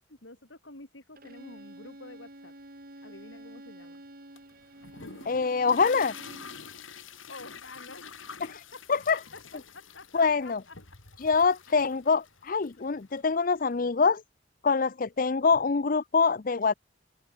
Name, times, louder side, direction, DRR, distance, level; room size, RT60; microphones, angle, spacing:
voice 1, 0.1-2.5 3.0-4.0 7.3-8.1 8.7-8.8 9.1-9.2 9.5-10.8, left 2 dB, 70° left, 4.5 m, -48 dB
Bowed string instrument, 1.2-6.6, right 1 dB, 50° right, 4.5 m, -49 dB
sound 1, 4.4-13.8, left 5 dB, 85° left, 4.2 m, -47 dB
voice 2, 5.3-6.1 8.4-8.6 8.9-9.2 10.1-10.6 11.2-14.2 14.6-16.7, left 5 dB, 45° left, 0.5 m, -25 dB
open air
head